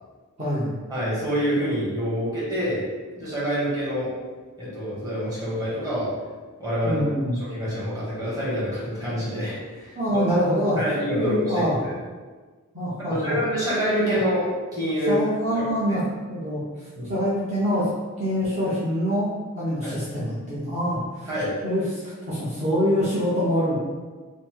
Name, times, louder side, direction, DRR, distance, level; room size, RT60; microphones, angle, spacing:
voice 1, 0.4-0.8 6.8-7.3 10.0-10.8 11.2-11.8 12.7-13.4 14.0-14.2 15.1-16.0 16.3-16.6 17.1-17.8 18.2-19.3 19.6-21.3 21.6-23.8, equal, 30° right, -11 dB, 0.9 m, -25 dB
voice 2, 0.9-2.8 3.2-4.1 4.6-6.1 6.6-7.1 7.4-10.2 10.8-11.9 13.1-15.2 15.5-16.0 16.9-17.1 19.8-19.9 21.3-21.5, equal, 15° right, -9 dB, 1.3 m, -27 dB
4.0 x 2.1 x 4.5 m, 1.4 s
head